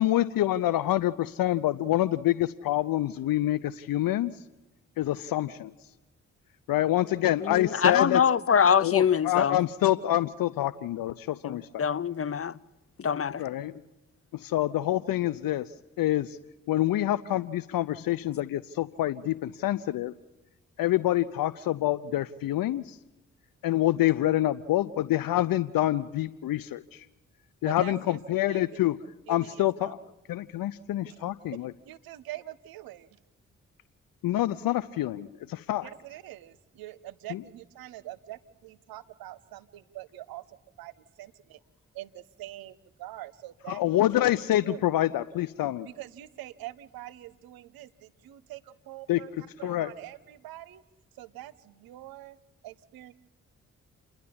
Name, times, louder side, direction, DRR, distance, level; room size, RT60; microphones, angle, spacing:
voice 1, 0.0-4.3 5.0-5.7 6.7-8.2 8.8-11.8 13.4-13.7 14.5-15.7 16.0-16.4 16.7-20.1 20.8-23.0 23.6-27.0 27.6-28.9 29.3-30.0 30.3-31.7 34.2-35.9 37.3-37.4 43.7-45.9 49.1-49.2 49.6-49.9, left 14 dB, 75° left, 0.6 m, -26 dB
voice 2, 7.4-9.6 11.4-12.6 13.0-13.4, left 7 dB, 40° left, 0.7 m, -24 dB
voice 3, 11.5-11.8 12.3-12.4 13.0-13.3 27.6-28.2 28.5-28.8 29.3-29.9 31.1-31.6 31.8-33.2 35.8-41.6 41.9-44.0 44.6-45.2 45.8-50.8 51.2-52.4 52.6-53.1, right 15 dB, 85° right, 0.8 m, -44 dB
29.0 x 11.0 x 8.6 m
supercardioid pair, 40°, 35 cm